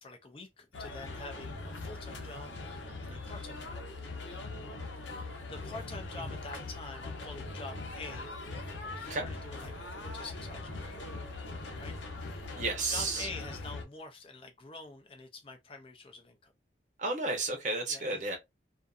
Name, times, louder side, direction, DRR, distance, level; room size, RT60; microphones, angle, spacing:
voice 1, 0.0-2.5 3.0-3.8 5.1-8.4 8.8-10.9 11.8-12.5 12.9-16.5 17.9-18.2, left 3 dB, 30° left, 0.4 m, -47 dB
sound 1, 0.7-13.8, left 3 dB, 85° left, 0.8 m, -41 dB
voice 2, 12.6-13.3 17.0-18.4, right 3 dB, 40° right, 0.7 m, -32 dB
2.5 x 2.4 x 2.3 m
head